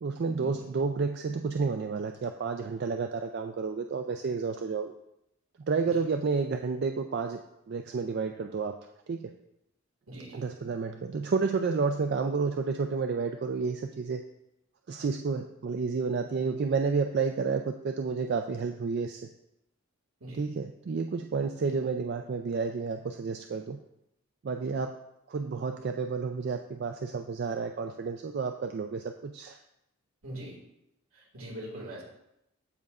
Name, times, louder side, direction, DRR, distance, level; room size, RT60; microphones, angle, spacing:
voice 1, 0.0-4.9 5.7-7.4 7.7-8.8 9.1-9.3 10.3-14.2 14.9-19.3 20.4-23.8 24.4-25.0 25.3-29.6, right 4 dB, 50° right, 5 dB, 0.3 m, -30 dB
voice 2, 10.1-10.5 20.2-20.5 21.6-21.7 30.2-30.6 31.1-32.0, right 1 dB, 75° right, -1 dB, 2.0 m, -42 dB
14.0 x 5.3 x 2.4 m, 0.82 s
head